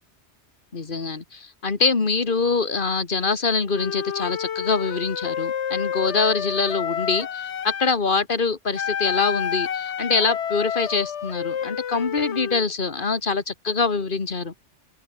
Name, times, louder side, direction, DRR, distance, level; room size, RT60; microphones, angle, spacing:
voice 1, 0.7-14.5, left 4 dB, 45° left, 1.8 m, -24 dB
Wind instrument woodwind instrument, 3.7-8.0 8.7-12.6, left 8 dB, 75° left, 1.3 m, -29 dB
omnidirectional pair, 1.2 m